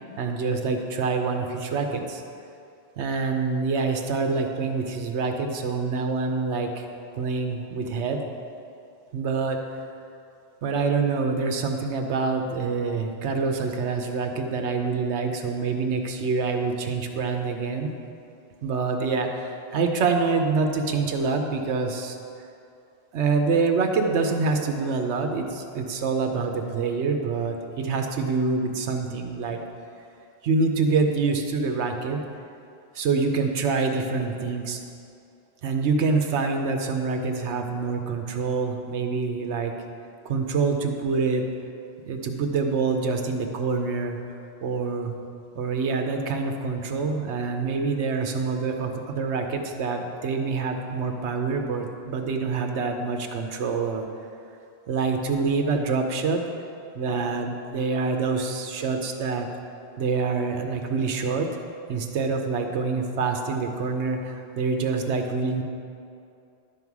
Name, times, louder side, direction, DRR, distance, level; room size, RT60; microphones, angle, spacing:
voice 1, 0.2-2.2 3.0-6.9 7.2-8.2 9.1-9.6 10.6-17.9 18.6-22.2 23.1-29.6 30.4-32.2 32.9-34.8 35.6-39.7 40.2-41.4 42.0-44.2 44.6-45.1 45.5-54.0 54.9-56.4 56.9-59.5 60.0-61.5 61.9-65.6, right 4 dB, 90° right, 4 dB, 1.1 m, -26 dB
11.5 x 5.6 x 4.7 m, 2.5 s
omnidirectional pair, 1.1 m